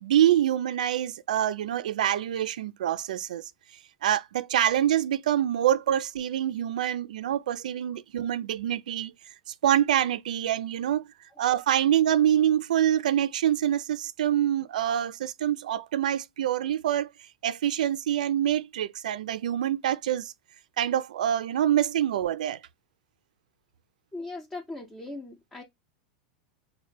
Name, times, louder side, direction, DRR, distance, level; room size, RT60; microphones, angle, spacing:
voice 1, 0.0-3.4 4.0-9.1 9.6-11.0 11.4-17.1 17.4-20.3 20.8-22.6, right 11 dB, 85° right, 0.3 m, -25 dB
voice 2, 24.1-25.6, left 2 dB, 10° left, 0.6 m, -39 dB
4.1 x 2.1 x 3.2 m
supercardioid pair, 135°, 4 cm